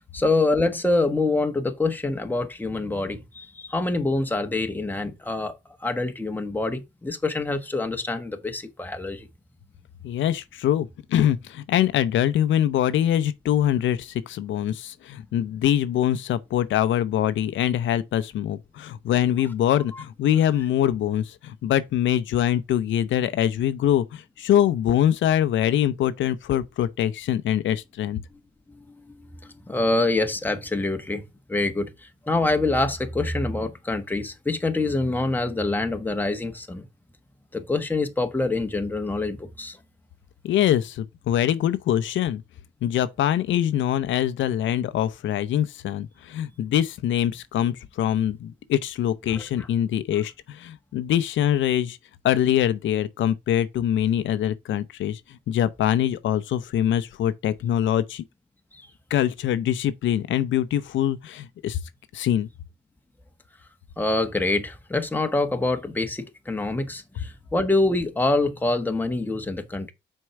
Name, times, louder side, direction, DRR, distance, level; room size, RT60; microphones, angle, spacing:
voice 1, 0.1-5.5 5.8-9.3 28.7-29.1 29.4-31.2 31.5-36.9 37.5-39.8 49.3-49.4 58.7-58.9 64.0-69.9, left 2 dB, 10° left, 1.3 m, -25 dB
voice 2, 10.0-28.2 40.4-42.4 42.8-52.0 52.2-58.2 59.1-61.8 62.1-62.5, left 11 dB, 75° left, 0.7 m, -24 dB
6.2 x 4.6 x 4.7 m
cardioid pair, 90°, 20 cm